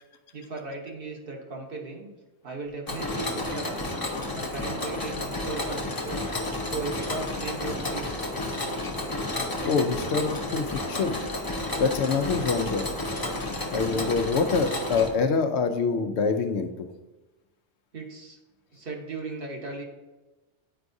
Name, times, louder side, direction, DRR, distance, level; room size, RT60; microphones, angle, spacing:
voice 1, 0.3-2.1 2.4-3.8 4.3-6.3 6.7-8.3 17.9-18.4 18.7-19.8, right 3 dB, 55° right, 0 dB, 1.2 m, -37 dB
Mechanisms, 2.9-15.1, left 2 dB, 25° left, 0.6 m, -31 dB
voice 2, 9.6-11.2 11.8-12.9 13.7-16.9, left 5 dB, 80° left, 8 dB, 0.9 m, -25 dB
8.8 x 4.7 x 2.6 m, 1.1 s
omnidirectional pair, 1.1 m